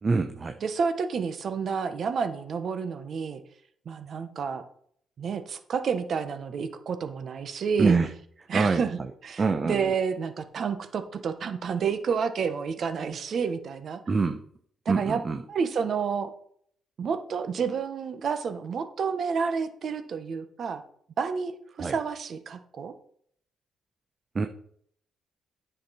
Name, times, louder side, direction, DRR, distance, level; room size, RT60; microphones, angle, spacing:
voice 1, 0.0-0.5 7.8-8.1 8.5-8.8 9.4-9.8 14.1-14.4 14.9-15.4 21.8-21.9 24.3-24.5, right 4 dB, 35° right, 7 dB, 0.8 m, -24 dB
voice 2, 0.6-3.4 3.8-4.6 5.2-8.0 8.5-14.0 14.8-15.2 15.5-16.3 17.0-20.8 21.2-22.9, right 6 dB, 55° right, 10 dB, 1.2 m, -30 dB
9.7 x 6.8 x 4.3 m, 0.62 s
cardioid pair, 90°, 0 cm